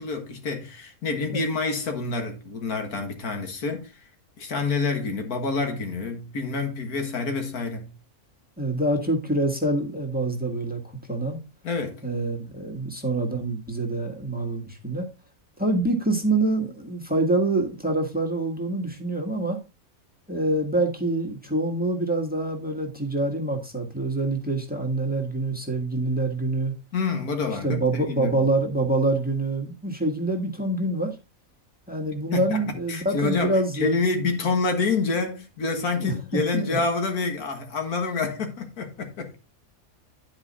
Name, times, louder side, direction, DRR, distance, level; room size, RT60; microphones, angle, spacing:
voice 1, 0.0-4.1 4.4-7.9 11.6-12.0 26.9-28.5 32.3-39.4, left 4 dB, 90° left, 2.0 m, -28 dB
voice 2, 8.6-10.8 11.1-11.4 12.0-15.1 15.6-19.6 20.3-26.7 27.6-31.1 31.9-34.0 36.0-36.8, right 2 dB, 5° right, 1.4 m, -26 dB
9.9 x 4.9 x 4.1 m
omnidirectional pair, 1.5 m